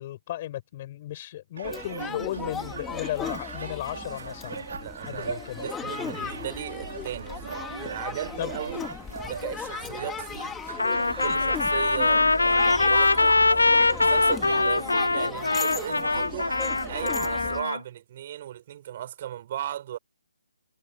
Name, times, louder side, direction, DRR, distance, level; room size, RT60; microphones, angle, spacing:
voice 1, 0.0-4.7 5.0-5.7 8.4-8.5, left 14 dB, 35° left, 7.8 m, -35 dB
sound 1, 1.6-17.6, left 7 dB, 10° left, 3.0 m, -37 dB
sound 2, 1.6-17.1, right 5 dB, 60° right, 3.3 m, -40 dB
voice 2, 4.8-8.9 9.3-10.5 11.1-16.5 16.9-20.0, right 11 dB, 40° right, 7.1 m, -36 dB
Trumpet, 10.8-17.8, left 3 dB, 85° left, 1.0 m, -22 dB
figure-of-eight pair, 145°, 0 cm